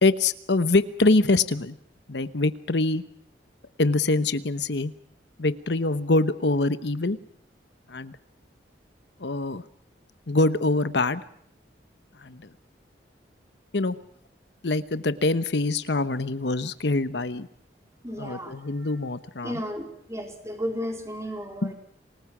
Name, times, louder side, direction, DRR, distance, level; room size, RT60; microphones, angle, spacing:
voice 1, 0.0-1.8 2.1-3.0 3.8-4.9 5.4-7.2 7.9-8.2 9.2-9.6 10.3-11.2 12.2-12.5 13.7-14.0 14.6-17.5 18.2-19.6 21.6-21.7, left 2 dB, 75° left, 13 dB, 1.0 m, -24 dB
voice 2, 18.0-18.5 19.4-21.7, equal, 15° right, 3 dB, 4.2 m, -33 dB
27.5 x 20.0 x 6.1 m, 0.68 s
head